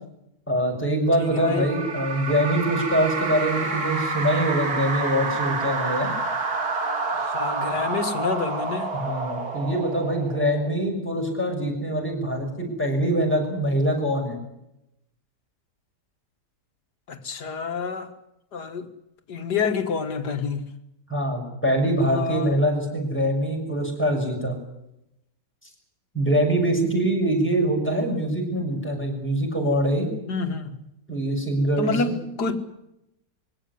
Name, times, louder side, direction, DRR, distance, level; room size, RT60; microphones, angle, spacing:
voice 1, 0.5-6.1 8.9-14.4 21.1-24.5 26.1-30.1 31.1-32.1, right 1 dB, 5° left, 6.5 m, -24 dB
voice 2, 1.2-1.7 7.1-8.9 17.1-18.1 18.5-18.9 19.3-20.7 22.0-22.6 30.3-30.8 31.8-32.6, left 5 dB, 70° left, 2.3 m, -28 dB
sound 1, 1.2-10.9, right 3 dB, 60° right, 2.7 m, -29 dB
22.5 x 17.5 x 9.7 m
omnidirectional pair, 1.8 m